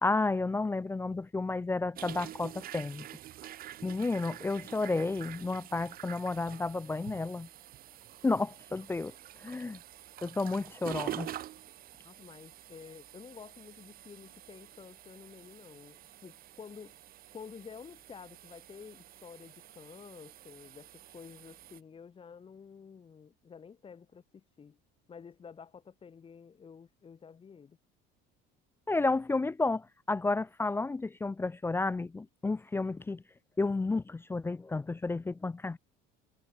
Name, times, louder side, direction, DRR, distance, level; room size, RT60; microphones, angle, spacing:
voice 1, 0.0-3.1 3.8-7.5 8.2-9.1 9.4-9.8 10.2-11.3 28.9-33.2 33.6-35.8, left 3 dB, 10° left, 0.5 m, -31 dB
sound 1, 2.0-21.8, right 12 dB, 45° right, 1.5 m, -47 dB
voice 2, 12.0-17.0 17.3-24.8 25.1-27.8, left 6 dB, 25° left, 6.6 m, -50 dB
cardioid pair, 140°, 20 cm